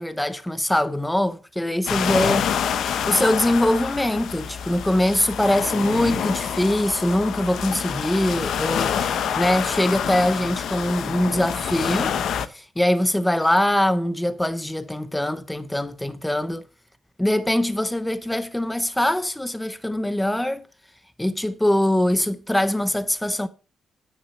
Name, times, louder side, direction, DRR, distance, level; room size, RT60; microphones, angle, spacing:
voice 1, 0.0-2.5 3.1-12.1 12.5-16.6 17.2-20.6 21.2-23.5, left 1 dB, 5° left, 0.6 m, -23 dB
sound 1, 1.9-12.5, left 8 dB, 60° left, 0.8 m, -27 dB
9.9 x 6.0 x 6.5 m
wide cardioid pair, 180°, 0 cm